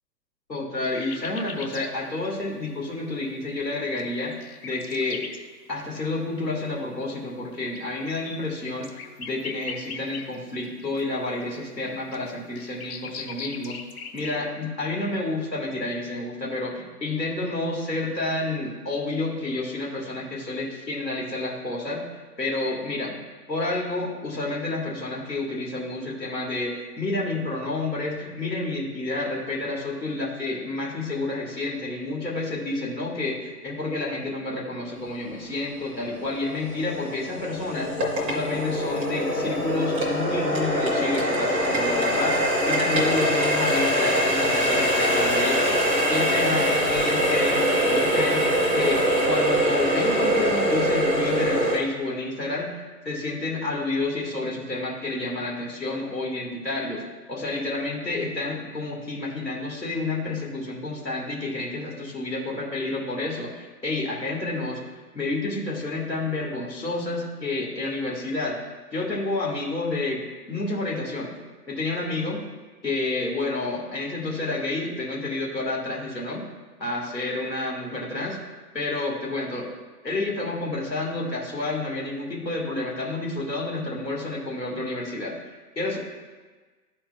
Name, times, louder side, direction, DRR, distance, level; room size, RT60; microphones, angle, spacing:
voice 1, 0.5-5.3 5.7-8.9 9.2-13.8 14.1-23.2 23.5-37.9 38.2-45.8 46.1-48.4 48.7-57.0 57.3-64.8 65.1-68.6 68.9-70.2 70.5-71.4 71.7-72.4 72.8-76.5 76.8-78.4 78.7-79.7 80.0-85.4 85.8-86.0, left 2 dB, 90° left, -4 dB, 1.9 m, -29 dB
sound 1, 0.9-1.9 2.3-2.4 3.7-5.4 6.4-6.5 7.3-10.7 11.0-14.4, left 6 dB, 60° left, 0.8 m, -40 dB
Water tap faucet, 35.3-35.4 36.0-51.8, equal, 10° right, 0.4 m, -23 dB
12.5 x 4.4 x 2.2 m, 1.3 s
figure-of-eight pair, 115°, 49 cm